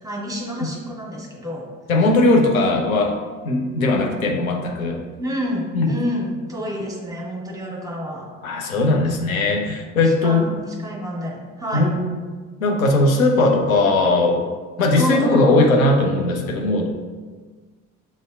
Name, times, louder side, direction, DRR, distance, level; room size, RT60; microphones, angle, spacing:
voice 1, 0.0-1.7 5.2-8.3 10.0-11.9 15.0-15.5, equal, 10° right, -3 dB, 1.1 m, -28 dB
voice 2, 1.9-3.1 3.4-5.0 5.7-5.9 8.4-10.5 11.7-12.1 12.6-14.4 14.8-16.9, left 2 dB, 85° left, 1 dB, 0.5 m, -18 dB
6.1 x 2.6 x 2.3 m, 1.4 s
figure-of-eight pair, 50°, 40 cm